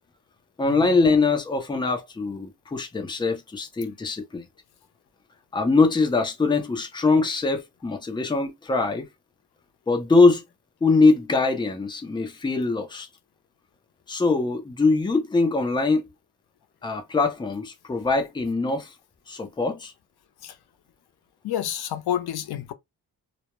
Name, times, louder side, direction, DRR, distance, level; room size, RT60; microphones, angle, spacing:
voice 1, 0.6-4.4 5.5-9.1 9.9-10.4 10.8-13.1 14.1-16.1 16.8-18.9 19.3-19.9, left 3 dB, 15° left, 0.4 m, -22 dB
voice 2, 21.4-22.7, left 10 dB, 85° left, 0.5 m, -29 dB
2.2 x 2.0 x 2.9 m
wide cardioid pair, 155°, 38 cm